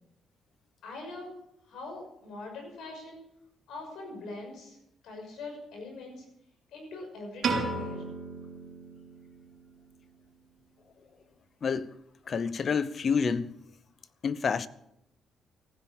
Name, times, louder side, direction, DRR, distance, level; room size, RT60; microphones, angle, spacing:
voice 1, 0.8-1.4 1.7-3.2 3.7-4.8 5.0-6.2 6.7-8.0, left 3 dB, 80° left, 6.2 m, -42 dB
Piano, 7.4-9.7, right 4 dB, 55° right, 4.4 m, -34 dB
voice 2, 11.6-11.9 12.3-13.5 14.2-14.7, left 6 dB, 45° left, 0.8 m, -28 dB
15.5 x 10.5 x 7.2 m
cardioid pair, 90°, 0 cm